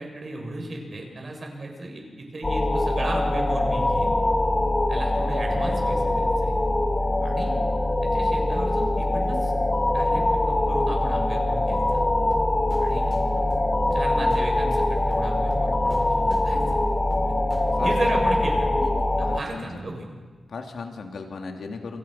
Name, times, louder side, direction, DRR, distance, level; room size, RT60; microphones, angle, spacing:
voice 1, 0.0-4.2 4.9-6.6 7.2-7.5 8.0-9.5 9.9-12.0 12.8-13.1 13.9-16.6 17.3-17.4 17.8-18.7 19.2-20.0, right 2 dB, 45° right, 1 dB, 7.3 m, -34 dB
sound 1, 2.4-19.4, left 1 dB, 25° left, 1.7 m, -23 dB
sound 2, 11.9-18.3, right 1 dB, 20° right, 6.8 m, -41 dB
voice 2, 18.8-19.7 20.4-22.0, left 4 dB, 75° left, 3 dB, 3.2 m, -37 dB
29.0 x 24.0 x 6.1 m, 1.4 s
wide cardioid pair, 90°, 0 cm